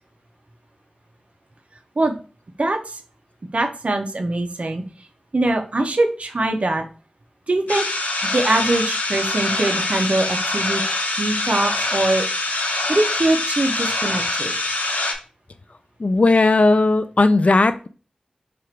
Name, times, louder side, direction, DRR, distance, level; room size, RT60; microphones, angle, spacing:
voice 1, 2.6-3.0 3.5-4.8 5.3-6.8 7.5-7.8 8.3-10.8 11.2-12.3 12.9-14.5, right 2 dB, 55° right, 5 dB, 0.7 m, -22 dB
sound 1, 7.7-15.1, left 2 dB, 85° left, 0.9 m, -24 dB
voice 2, 16.0-17.9, left 2 dB, 55° left, 12 dB, 0.4 m, -16 dB
4.7 x 2.5 x 4.5 m, 0.36 s
wide cardioid pair, 65°, 3 cm